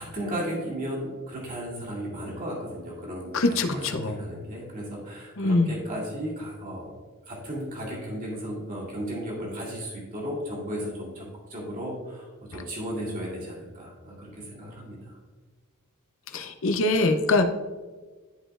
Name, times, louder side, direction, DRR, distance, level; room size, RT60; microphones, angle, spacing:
voice 1, 0.0-3.4 3.7-6.9 7.3-15.2, equal, 35° right, -4 dB, 2.2 m, -35 dB
voice 2, 3.3-4.1 5.4-5.7 16.3-17.5, left 2 dB, 60° left, 6 dB, 0.7 m, -23 dB
12.0 x 5.1 x 2.5 m, 1.4 s
head